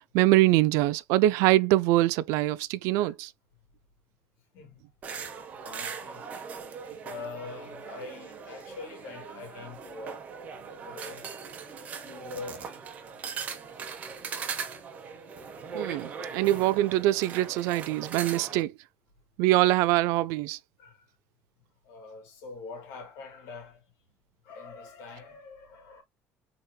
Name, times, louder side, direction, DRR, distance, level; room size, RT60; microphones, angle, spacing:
voice 1, 0.1-3.3 15.7-18.7 19.4-20.6, right 16 dB, 75° right, 0.3 m, -23 dB
voice 2, 4.5-4.9 5.5-6.3 7.0-10.3 10.7-11.3 11.9-12.8 16.3-16.5 20.8-21.1 21.8-23.9 24.4-26.0, left 4 dB, 75° left, 2.2 m, -44 dB
sound 1, 5.0-18.6, right 6 dB, 30° right, 0.9 m, -40 dB
4.1 x 3.8 x 2.3 m
cardioid pair, 180°, 5 cm